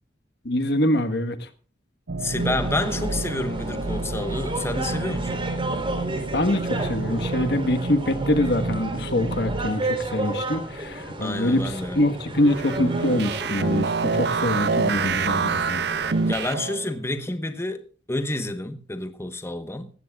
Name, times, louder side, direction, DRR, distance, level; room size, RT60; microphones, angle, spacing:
voice 1, 0.4-1.5 6.3-15.8, left 1 dB, 60° left, 1.4 m, -24 dB
sound 1, 2.1-9.7, right 3 dB, 85° right, 0.9 m, -31 dB
voice 2, 2.2-5.4 11.2-12.0 16.3-19.9, left 1 dB, 15° left, 1.1 m, -29 dB
sound 2, 2.4-16.5, right 2 dB, 30° right, 3.5 m, -33 dB
sound 3, 12.4-16.9, right 5 dB, 60° right, 0.6 m, -25 dB
19.0 x 15.5 x 2.4 m
head